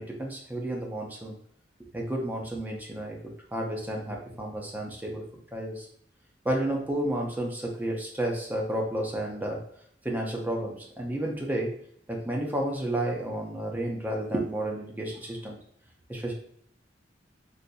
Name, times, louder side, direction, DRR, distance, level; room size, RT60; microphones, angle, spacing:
voice 1, 0.0-1.4 1.9-5.2 5.5-5.9 6.4-9.6 10.0-11.7 12.1-15.6 16.1-16.3, right 1 dB, 10° right, -1 dB, 0.5 m, -31 dB
3.9 x 2.6 x 2.3 m, 0.64 s
head